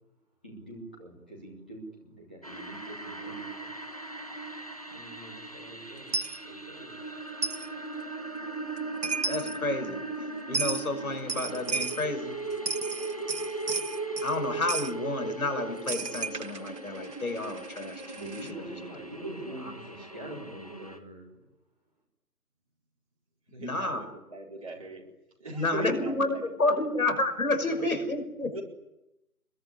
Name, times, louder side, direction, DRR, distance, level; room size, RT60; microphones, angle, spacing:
voice 1, 0.4-3.8 4.3-4.5 4.9-7.0 18.2-21.4, right 1 dB, 5° left, -6 dB, 2.2 m, -44 dB
sound 1, 2.4-21.0, right 2 dB, 25° left, 1.3 m, -38 dB
Coin (dropping), 6.1-6.4 7.4-7.7 8.8-8.9 9.0-9.6 10.5-10.9 11.3-12.0 12.5-14.3 14.7-14.9 15.9-18.5, right 4 dB, 80° right, 1.3 m, -33 dB
voice 2, 9.3-10.0 10.5-12.3 14.2-18.4 23.6-24.0 25.5-28.6, left 2 dB, 60° left, 8 dB, 5.8 m, -30 dB
voice 3, 23.5-25.0 25.4-26.8 27.7-27.9 28.5-28.6, right 1 dB, 20° right, -3 dB, 4.6 m, -40 dB
26.0 x 22.5 x 10.0 m, 0.91 s
figure-of-eight pair, 180°, 47 cm